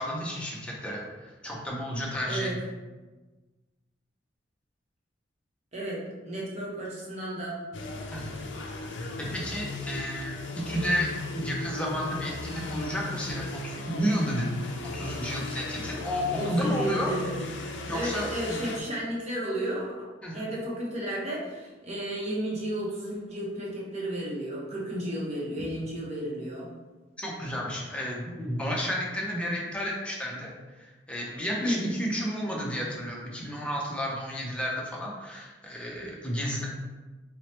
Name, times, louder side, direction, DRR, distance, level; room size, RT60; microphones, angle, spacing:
voice 1, 0.0-2.6 8.1-8.4 8.8-11.1 11.4-14.5 14.8-17.1 17.9-18.6 20.2-20.5 27.2-36.7, equal, 5° left, -3 dB, 0.6 m, -32 dB
voice 2, 5.7-7.6 15.8-15.9 16.3-17.5 17.9-20.0 20.3-26.7 31.6-31.8, right 1 dB, 35° right, -4 dB, 0.8 m, -33 dB
sound 1, 7.7-18.8, left 2 dB, 70° left, 0.4 m, -37 dB
4.5 x 2.1 x 2.8 m, 1.2 s
head